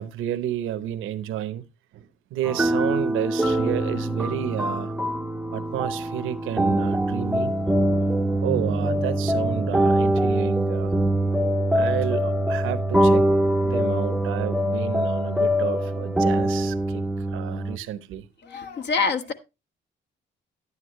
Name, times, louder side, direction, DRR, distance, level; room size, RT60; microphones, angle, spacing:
voice 1, 0.0-1.6 1.9-4.9 5.5-7.5 8.4-11.0 11.7-13.3 13.6-18.3, right 11 dB, 90° right, 0.9 m, -31 dB
Messy Love Piano in G Major, 2.4-17.8, right 1 dB, 5° right, 0.6 m, -23 dB
voice 2, 18.4-19.3, left 4 dB, 60° left, 1.4 m, -25 dB
11.0 x 9.8 x 3.1 m
cardioid pair, 90°, 20 cm